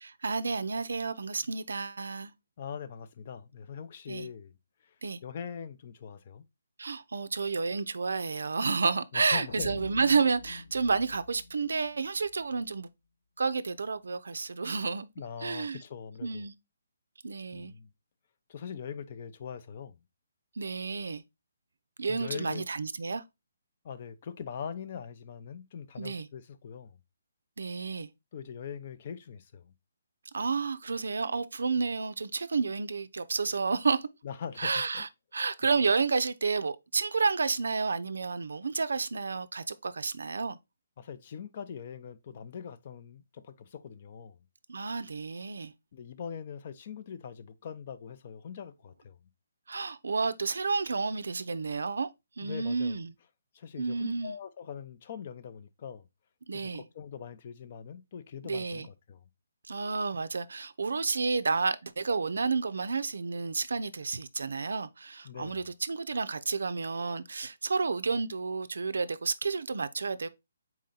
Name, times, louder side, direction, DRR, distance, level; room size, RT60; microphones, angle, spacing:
voice 1, 0.0-2.3 4.1-4.3 5.0-5.2 6.8-12.9 13.4-15.1 15.4-15.8 16.2-16.5 17.2-17.7 20.6-21.2 22.0-23.2 26.0-26.3 27.6-28.1 30.3-34.1 34.6-40.6 44.7-45.7 49.7-52.1 52.4-53.1 53.8-54.4 56.5-56.9 58.4-58.9 59.7-70.3, right 4 dB, 80° right, 0.4 m, -30 dB
voice 2, 2.6-4.5 5.2-6.5 9.1-9.8 15.2-16.5 17.5-17.9 18.5-20.0 22.1-22.7 23.8-27.0 28.3-29.7 34.2-35.0 41.0-44.4 45.9-49.2 52.4-53.0 53.5-56.0 56.5-59.2 65.2-65.6, left 7 dB, 40° left, 0.5 m, -42 dB
sound 1, 9.5-12.6, left 3 dB, 70° left, 1.4 m, -46 dB
4.2 x 2.8 x 3.7 m
hypercardioid pair, 160°, 0 cm